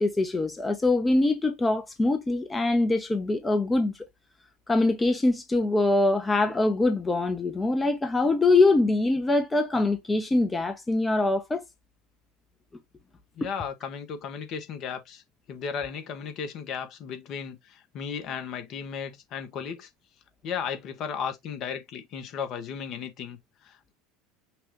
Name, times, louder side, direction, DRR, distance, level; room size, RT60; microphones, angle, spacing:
voice 1, 0.0-4.0 4.7-11.6, left 2 dB, 15° left, 0.8 m, -23 dB
voice 2, 13.4-15.2 15.5-19.9 20.4-23.9, left 7 dB, 45° left, 1.1 m, -35 dB
6.0 x 2.4 x 3.1 m
figure-of-eight pair, 70°, 0 cm